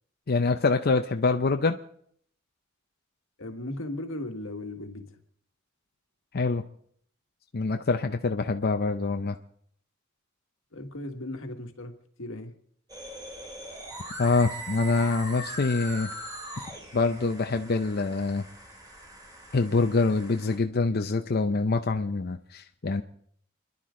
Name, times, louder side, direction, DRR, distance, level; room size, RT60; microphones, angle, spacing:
voice 1, 0.3-1.8 6.3-6.6 7.5-9.4 14.2-16.1 16.6-18.4 19.5-23.0, left 3 dB, 50° left, 0.6 m, -25 dB
voice 2, 3.4-5.2 10.7-12.5, left 1 dB, 85° left, 1.8 m, -37 dB
sound 1, 12.9-20.6, right 1 dB, 20° right, 3.2 m, -41 dB
30.0 x 11.0 x 3.8 m
head